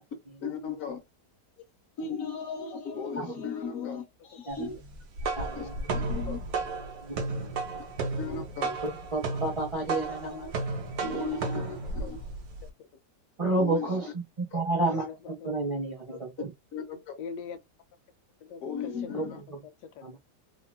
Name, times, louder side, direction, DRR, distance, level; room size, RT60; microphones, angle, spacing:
voice 1, 0.4-1.0 2.0-4.8 5.5-6.4 8.2-8.8 9.9-10.5 11.0-12.2 13.6-14.0 14.5-14.6 16.7-17.2 18.6-19.4, left 5 dB, 60° left, 1.1 m, -36 dB
sound 1, 4.9-12.7, right 3 dB, 70° right, 1.2 m, -33 dB
voice 2, 5.3-5.9 7.0-7.5 8.8-10.5 11.1-11.4 13.4-14.1 14.4-15.1 15.4-16.5 19.1-19.2 20.0-20.2, right 2 dB, 45° right, 0.4 m, -30 dB
voice 3, 14.7-15.5 16.1-16.2 17.2-17.6 18.4-20.0, left 6 dB, 80° left, 1.2 m, -43 dB
3.6 x 2.3 x 2.2 m
omnidirectional pair, 1.8 m